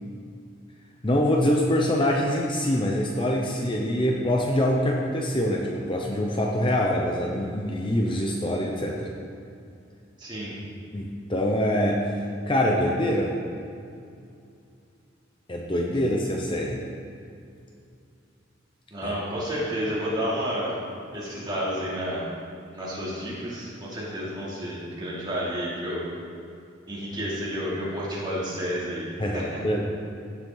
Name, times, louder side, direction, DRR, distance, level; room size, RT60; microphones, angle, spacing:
voice 1, 1.0-9.1 10.9-12.0 12.5-13.4 15.5-16.8 19.0-19.2 29.2-29.9, equal, 25° left, -1 dB, 0.7 m, -24 dB
voice 2, 10.2-10.5 18.9-20.7 21.1-22.3 22.7-26.0 26.9-29.1 29.3-29.4, equal, 25° right, -8 dB, 2.9 m, -30 dB
16.5 x 7.3 x 4.0 m, 2.5 s
head